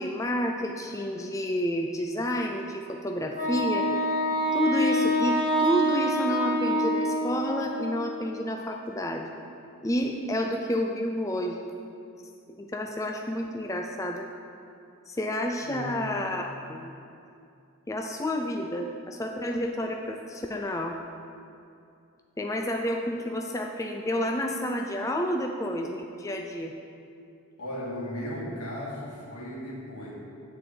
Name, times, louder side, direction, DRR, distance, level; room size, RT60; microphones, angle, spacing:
voice 1, 0.0-3.9 4.5-9.3 9.8-11.6 12.6-14.3 15.1-16.9 17.9-21.0 22.4-26.7, equal, 15° left, 2 dB, 0.4 m, -30 dB
Wind instrument woodwind instrument, 3.3-8.0, equal, 40° left, 2.4 m, -26 dB
voice 2, 15.6-16.1 27.6-30.1, left 1 dB, 90° left, -4 dB, 2.1 m, -36 dB
9.5 x 4.3 x 7.4 m, 2.5 s
head